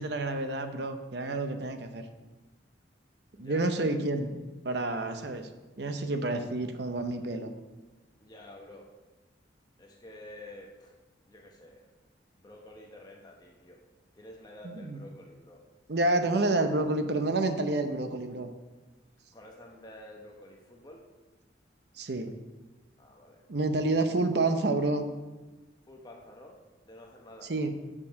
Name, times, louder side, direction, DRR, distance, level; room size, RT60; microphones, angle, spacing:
voice 1, 0.0-2.0 3.4-5.5 5.8-7.5 14.6-15.0 15.9-18.5 22.0-22.3 23.5-25.0 27.5-27.7, right 2 dB, 60° right, 7 dB, 0.7 m, -29 dB
voice 2, 3.3-3.9 8.2-8.9 9.8-10.9 11.2-11.8 12.4-13.8 14.1-15.6 19.3-21.0 23.0-23.4 25.9-26.6 26.8-27.5, left 1 dB, 20° left, 0 dB, 0.9 m, -49 dB
7.0 x 5.7 x 6.4 m, 1.2 s
head